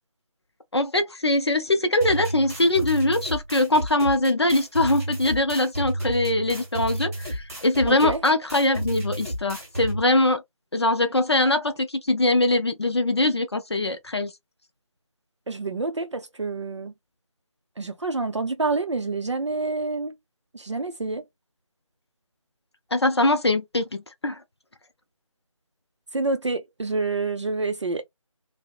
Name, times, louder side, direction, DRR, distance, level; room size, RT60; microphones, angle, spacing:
voice 1, 0.7-10.4 10.7-14.3 22.9-24.4, left 2 dB, 50° left, 0.5 m, -22 dB
sound 1, 2.0-10.0, right 1 dB, 25° right, 0.9 m, -32 dB
voice 2, 7.9-8.2 15.5-16.9 17.8-20.1 20.5-21.2 26.1-28.0, right 3 dB, 55° right, 0.5 m, -27 dB
2.6 x 2.0 x 2.3 m
figure-of-eight pair, 165°, 18 cm